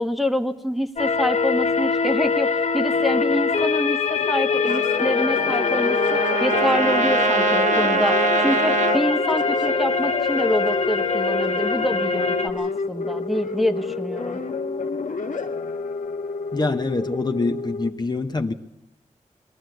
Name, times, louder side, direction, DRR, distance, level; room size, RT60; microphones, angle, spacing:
voice 1, 0.0-14.4, equal, ahead, 5 dB, 1.1 m, -26 dB
sound 1, 1.0-12.5, left 4 dB, 60° left, 1.1 m, -23 dB
sound 2, 4.2-17.9, left 4 dB, 80° left, 1.4 m, -29 dB
Trumpet, 4.6-9.0, right 5 dB, 65° right, 1.0 m, -24 dB
voice 2, 16.5-18.5, left 3 dB, 35° left, 6 dB, 1.0 m, -25 dB
22.0 x 14.0 x 9.2 m, 0.84 s
wide cardioid pair, 100°, 13 cm